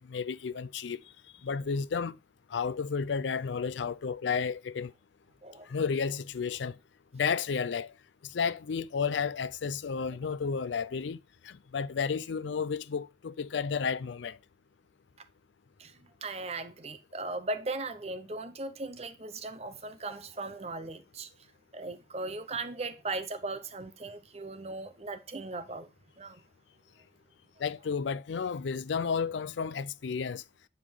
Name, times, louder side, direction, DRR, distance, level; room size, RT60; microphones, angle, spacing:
voice 1, 0.1-1.0 1.4-2.2 2.5-4.9 5.7-6.8 7.1-7.9 8.2-11.2 11.4-14.4 27.6-30.4, left 6 dB, 80° left, 0.4 m, -32 dB
voice 2, 15.8-21.3 21.7-25.9 26.2-26.4, right 3 dB, 35° right, 0.8 m, -38 dB
9.2 x 5.0 x 3.6 m
head